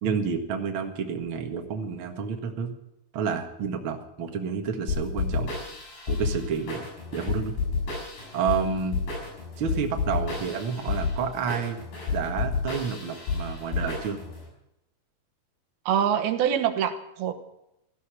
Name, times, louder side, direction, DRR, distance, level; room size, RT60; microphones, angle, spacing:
voice 1, 0.0-2.7 3.1-5.5 6.1-6.8 7.1-7.6 8.3-9.0 9.6-11.8 12.1-14.2, right 6 dB, 45° right, 4 dB, 2.0 m, -29 dB
sound 1, 4.9-14.4, left 4 dB, 70° left, 8.0 m, -30 dB
voice 2, 15.9-17.3, right 9 dB, 90° right, 8 dB, 3.2 m, -24 dB
17.0 x 14.0 x 6.2 m, 0.85 s
omnidirectional pair, 4.3 m